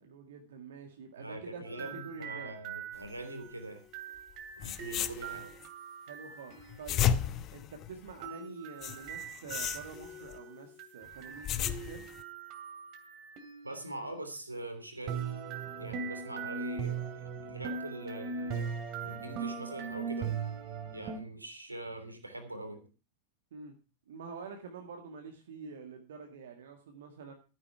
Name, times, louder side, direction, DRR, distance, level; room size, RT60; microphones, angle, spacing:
voice 1, 0.0-2.5 6.0-7.0 7.5-12.1 23.5-23.8 24.1-27.3, right 5 dB, 60° right, 4 dB, 1.8 m, -47 dB
voice 2, 1.2-3.8 4.6-5.5 13.6-15.2 15.8-18.7 19.0-20.3 20.9-22.9, right 1 dB, 85° right, 6 dB, 3.1 m, -43 dB
sound 1, 1.7-7.0 8.2-14.0 15.1-21.2, right 6 dB, 40° right, 2.5 m, -40 dB
sound 2, 4.3-4.4 4.6-5.7 6.6-8.3 8.8-10.4 11.1-12.2, left 10 dB, 35° left, 0.9 m, -34 dB
13.5 x 9.7 x 4.7 m, 0.33 s
figure-of-eight pair, 90°, 0 cm